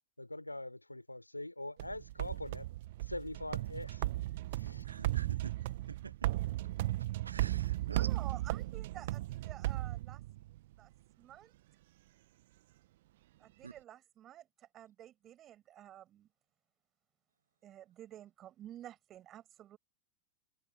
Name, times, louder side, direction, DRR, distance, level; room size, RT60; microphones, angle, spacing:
voice 1, 0.0-2.7 3.1-4.1 4.5-4.8, left 1 dB, 85° left, 4.6 m, -43 dB
sound 1, 1.8-10.6, right 16 dB, 55° right, 1.7 m, -36 dB
voice 2, 4.8-5.5 5.9-6.1 7.2-8.1 13.6-13.7, right 5 dB, 75° right, 0.9 m, -46 dB
voice 3, 7.8-10.2 10.8-10.9 11.2-11.6 13.4-16.3 17.6-19.8, right 12 dB, 30° right, 6.9 m, -51 dB
figure-of-eight pair, 90°, 0 cm